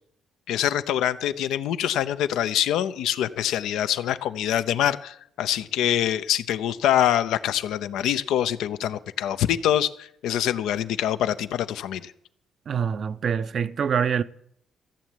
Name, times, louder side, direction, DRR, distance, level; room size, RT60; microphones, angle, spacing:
voice 1, 0.5-12.1, left 11 dB, 85° left, 0.7 m, -25 dB
voice 2, 12.7-14.2, right 7 dB, 55° right, 0.6 m, -25 dB
14.5 x 7.4 x 9.2 m
cardioid pair, 90°, 0 cm